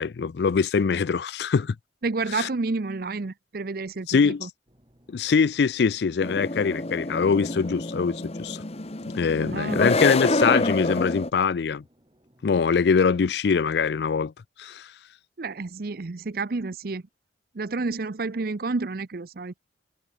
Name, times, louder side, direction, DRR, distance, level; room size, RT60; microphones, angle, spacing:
voice 1, 0.0-1.8 2.4-2.5 4.1-4.5 5.1-8.6 9.1-11.8 12.4-14.3 14.6-14.9, left 5 dB, 70° left, 0.4 m, -23 dB
voice 2, 2.0-4.5 9.4-9.8 15.4-17.0 17.5-19.5, right 3 dB, 55° right, 0.7 m, -30 dB
sound 1, 4.7-12.5, equal, 25° right, 7.4 m, -61 dB
sound 2, 6.2-11.3, left 2 dB, 35° left, 1.4 m, -27 dB
head